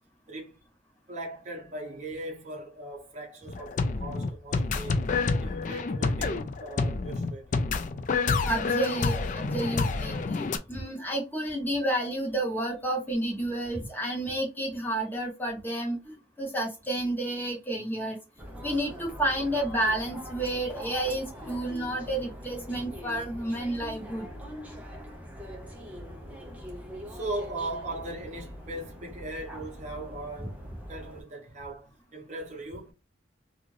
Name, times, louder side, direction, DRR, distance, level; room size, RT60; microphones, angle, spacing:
voice 1, 1.1-5.0 5.4-7.6 27.1-32.9, right 2 dB, 35° right, 0.9 m, -39 dB
sound 1, 3.5-10.6, left 4 dB, 40° left, 0.3 m, -28 dB
voice 2, 8.4-18.2 18.6-24.3, right 1 dB, 10° left, 1.0 m, -30 dB
sound 2, 18.4-31.2, equal, 10° right, 0.5 m, -43 dB
2.5 x 2.4 x 3.1 m
head